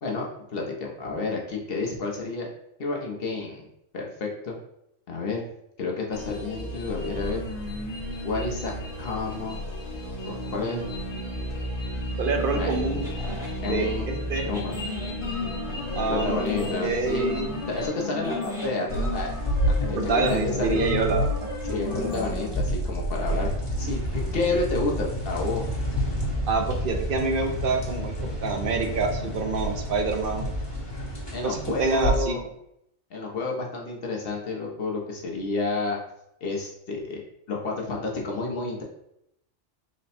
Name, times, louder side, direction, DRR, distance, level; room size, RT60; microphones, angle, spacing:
voice 1, 0.0-2.5 2.8-3.6 3.9-4.5 5.1-5.4 5.8-7.4 8.2-8.7 9.0-9.6 10.2-10.8 12.5-12.8 13.6-14.1 14.4-14.7 16.1-17.4 17.7-19.3 19.7-20.0 20.3-20.8 21.7-23.5 23.8-25.6 31.3-32.4 33.1-36.0 36.4-37.2 37.5-38.8, left 3 dB, 55° left, -1 dB, 0.9 m, -30 dB
sound 1, 6.1-17.9, equal, 75° left, 1.3 m, -33 dB
sound 2, 9.0-13.6 14.3-22.6, left 3 dB, ahead, 1.0 m, -35 dB
voice 2, 12.2-13.4 13.6-14.5 16.0-16.4 16.8-17.5 19.9-21.5 26.5-28.1 28.4-30.5 31.4-32.4, right 4 dB, 60° right, 3 dB, 0.6 m, -27 dB
sound 3, 18.9-32.2, equal, 20° left, 0.9 m, -29 dB
4.1 x 2.2 x 4.1 m, 0.79 s
omnidirectional pair, 1.4 m